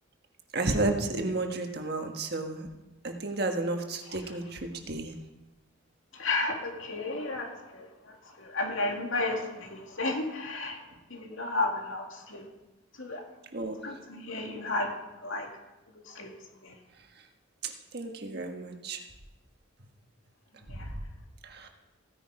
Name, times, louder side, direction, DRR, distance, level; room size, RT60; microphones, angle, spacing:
voice 1, 0.5-2.7 3.0-5.1 13.5-13.8 17.6-19.0 20.8-20.9 21.4-21.7, right 2 dB, 50° right, 4 dB, 1.5 m, -32 dB
voice 2, 6.1-10.8 11.1-12.5 13.0-13.2 13.8-15.5 16.1-16.3 16.6-16.8 20.7-20.9, left 2 dB, 80° left, 2 dB, 2.4 m, -33 dB
15.5 x 10.0 x 4.9 m, 1.0 s
head